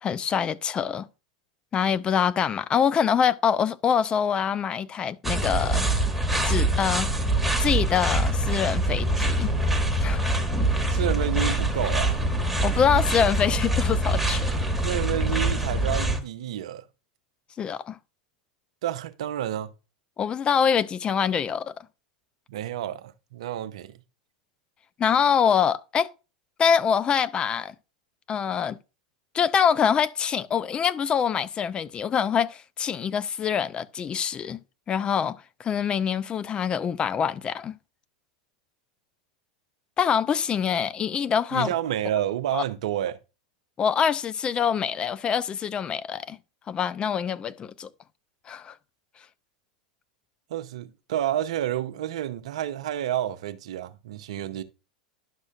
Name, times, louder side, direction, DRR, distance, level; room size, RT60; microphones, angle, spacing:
voice 1, 0.0-1.1 1.7-5.8 6.4-7.1 7.6-9.5 10.0-10.4 10.9-11.0 12.6-14.4 17.6-18.0 20.2-21.7 25.0-26.1 26.6-27.7 28.3-28.8 29.3-34.6 34.9-37.7 40.0-41.7 42.5-42.6 43.8-46.4 46.7-47.9 48.5-48.7, left 7 dB, 30° left, 0.5 m, -25 dB
sound 1, 5.2-16.2, right 1 dB, 5° right, 1.6 m, -24 dB
voice 2, 10.9-12.2 14.8-16.8 18.8-19.7 22.5-23.9 41.5-43.2 50.5-54.6, right 11 dB, 65° right, 0.7 m, -29 dB
11.0 x 6.3 x 2.4 m
hypercardioid pair, 90°, 4 cm